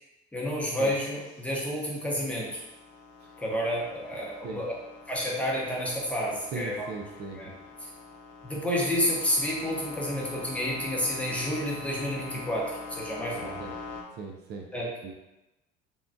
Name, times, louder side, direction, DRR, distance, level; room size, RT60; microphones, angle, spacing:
voice 1, 0.3-2.6 3.4-4.7 5.1-6.9 7.4-7.5 8.4-13.5 14.7-14.9, equal, 5° left, -4 dB, 0.8 m, -30 dB
sound 1, 1.2-14.0, left 4 dB, 65° left, 0.6 m, -44 dB
voice 2, 6.5-7.5 13.4-13.8 14.1-14.7 15.0-15.1, right 4 dB, 55° right, 1 dB, 0.4 m, -39 dB
3.4 x 2.2 x 2.5 m, 0.98 s
supercardioid pair, 105°, 21 cm